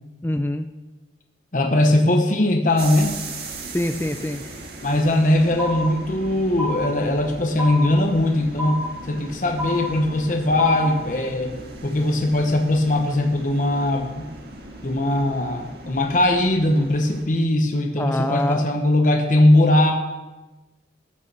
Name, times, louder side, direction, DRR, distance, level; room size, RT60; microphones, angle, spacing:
voice 1, 0.2-0.7 3.7-4.4 18.0-18.7, left 1 dB, 10° left, 7 dB, 0.4 m, -25 dB
voice 2, 1.5-3.2 4.8-14.3 14.8-19.9, left 1 dB, 40° left, 3 dB, 1.0 m, -20 dB
sound 1, 2.8-17.2, right 2 dB, 55° right, 1.8 m, -38 dB
sound 2, 5.6-6.3 6.6-7.3 7.6-8.3 8.6-9.3 9.6-10.3 10.6-11.3, left 1 dB, 5° right, 1.0 m, -30 dB
13.5 x 6.7 x 6.8 m, 1.2 s
head